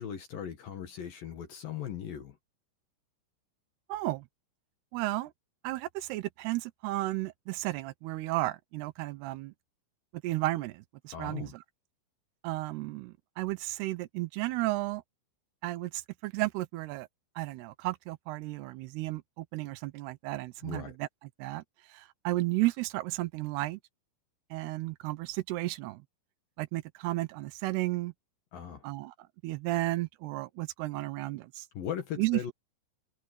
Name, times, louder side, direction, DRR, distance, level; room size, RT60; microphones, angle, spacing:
voice 1, 0.0-2.4 11.1-11.5 20.6-21.0 28.5-28.8 31.7-32.5, left 9 dB, 60° left, 2.7 m, -38 dB
voice 2, 3.9-4.2 4.9-5.3 5.6-9.5 10.2-11.6 12.4-15.0 15.6-17.1 17.4-21.1 21.4-21.6 21.9-23.8 24.5-26.0 26.6-28.1 28.8-29.1 29.4-31.7 32.2-32.4, right 18 dB, 85° right, 2.3 m, -33 dB
omnidirectional pair, 5.8 m